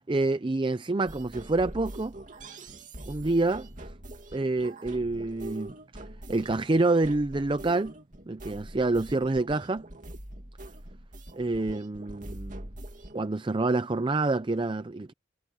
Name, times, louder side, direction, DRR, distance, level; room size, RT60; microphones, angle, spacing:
voice 1, 0.1-2.1 3.1-3.9 4.3-5.8 6.3-7.9 8.3-9.9 11.3-12.7 13.1-15.1, right 2 dB, 25° right, 0.5 m, -27 dB
sound 1, 1.1-13.2, right 1 dB, 40° right, 2.7 m, -44 dB
head